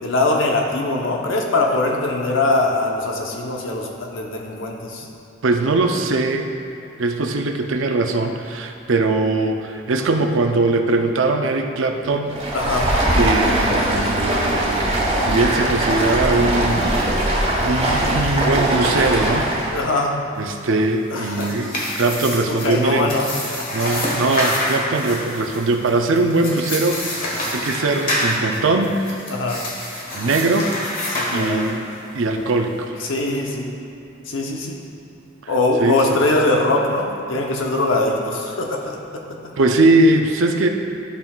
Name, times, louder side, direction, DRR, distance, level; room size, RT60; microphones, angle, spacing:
voice 1, 0.0-5.1 12.5-13.0 19.7-20.2 21.1-21.7 22.5-23.3 23.6-24.2 27.3-27.5 29.3-29.7 31.1-31.7 33.0-33.7 34.3-34.8 35.5-39.4, left 2 dB, 85° left, 0 dB, 0.9 m, -22 dB
voice 2, 5.4-6.5 7.0-12.3 13.1-17.4 17.6-19.5 20.4-23.1 23.7-28.9 30.1-30.7 31.3-31.8 32.1-33.0 35.4-35.5 35.8-36.0 39.6-40.7, right 2 dB, 90° right, 4 dB, 0.6 m, -20 dB
Stream, 12.3-19.8, right 1 dB, 30° right, 1.2 m, -20 dB
sound 1, 21.1-32.0, left 1 dB, 45° left, 1.4 m, -27 dB
11.5 x 5.5 x 2.4 m, 2.8 s
head